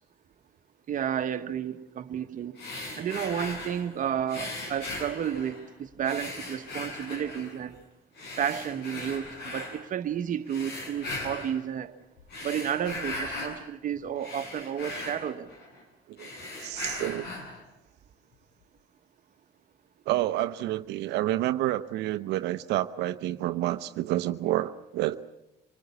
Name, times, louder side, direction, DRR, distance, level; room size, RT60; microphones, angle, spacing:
voice 1, 0.9-2.6 2.9-7.8 8.4-11.9 12.4-15.5, right 9 dB, 50° right, 1.5 m, -32 dB
sound 1, 2.6-3.9 4.3-5.7 6.0-7.6 8.2-9.8 10.5-11.6 12.2-13.6 14.0-15.8 16.1-17.6, left 2 dB, 75° left, 7.2 m, -38 dB
voice 2, 16.6-17.3 20.1-25.2, right 15 dB, 85° right, 0.8 m, -29 dB
26.0 x 20.5 x 8.5 m
cardioid pair, 110°, 17 cm